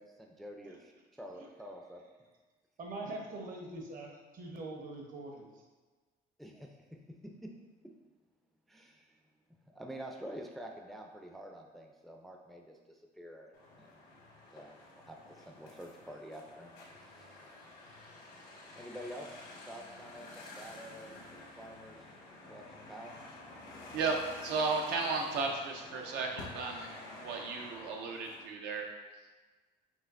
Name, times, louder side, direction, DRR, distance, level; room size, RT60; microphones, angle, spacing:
voice 1, 0.0-2.0 6.4-7.0 7.4-7.5 8.7-9.2 9.7-13.5 13.8-14.0 14.3-16.7 17.1-17.4 18.8-22.2 22.5-23.1, equal, ahead, 2 dB, 0.3 m, -48 dB
voice 2, 2.8-5.5, right 2 dB, 55° right, 1 dB, 0.9 m, -43 dB
sound 1, 13.5-28.4, left 2 dB, 85° left, 1.1 m, -50 dB
voice 3, 23.9-26.9 27.2-28.9, right 4 dB, 85° right, 2 dB, 0.6 m, -34 dB
5.4 x 2.8 x 2.5 m, 1.3 s
cardioid pair, 110°, 17 cm